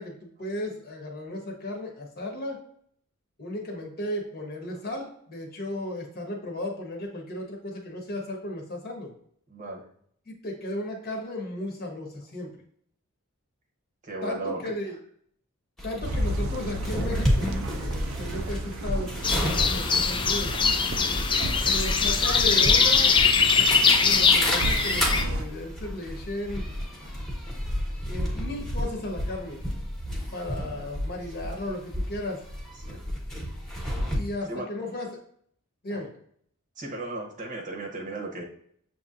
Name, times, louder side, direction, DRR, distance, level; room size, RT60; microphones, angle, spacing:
voice 1, 0.0-2.6 3.4-9.1 10.3-12.5 14.2-14.9 15.8-20.5 21.7-23.1 24.0-26.7 28.1-29.6 30.3-32.4 34.1-35.2 35.8-36.1, left 1 dB, 45° left, 1 dB, 1.1 m, -35 dB
voice 2, 9.5-9.9 14.0-14.6 20.9-21.1 30.7-30.9 31.5-31.6 32.9-33.0 34.5-34.7 35.9-36.1 36.8-38.4, right 2 dB, 35° right, 0 dB, 0.9 m, -36 dB
sound 1, 15.8-34.2, equal, ahead, 1.1 m, -31 dB
sound 2, 16.0-25.4, right 2 dB, 65° right, 0.5 m, -35 dB
sound 3, 19.2-25.2, left 5 dB, 20° left, 0.4 m, -22 dB
6.7 x 2.8 x 2.5 m, 0.64 s
head